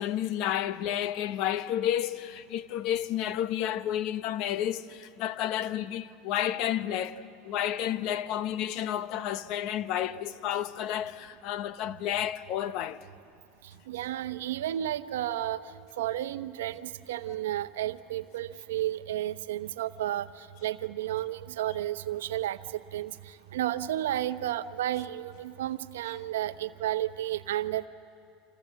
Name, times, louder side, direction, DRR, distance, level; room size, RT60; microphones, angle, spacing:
voice 1, 0.0-13.1, left 11 dB, 60° left, 0.9 m, -31 dB
voice 2, 13.9-15.6 16.0-23.1 23.5-27.9, right 13 dB, 85° right, 0.8 m, -32 dB
30.0 x 26.5 x 7.5 m
supercardioid pair, 105°, 0 cm